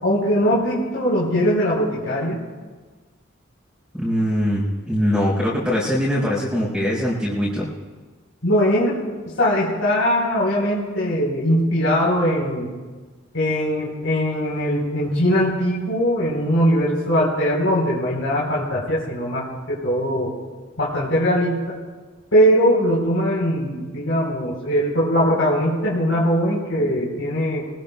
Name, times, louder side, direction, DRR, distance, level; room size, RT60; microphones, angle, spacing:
voice 1, 0.0-2.4 8.4-9.0 9.4-12.7 13.3-20.3 20.8-21.6 22.3-27.7, equal, 80° left, -7 dB, 4.0 m, -20 dB
voice 2, 3.9-7.7, equal, ahead, -8 dB, 4.1 m, -22 dB
24.0 x 20.0 x 2.3 m, 1.4 s
head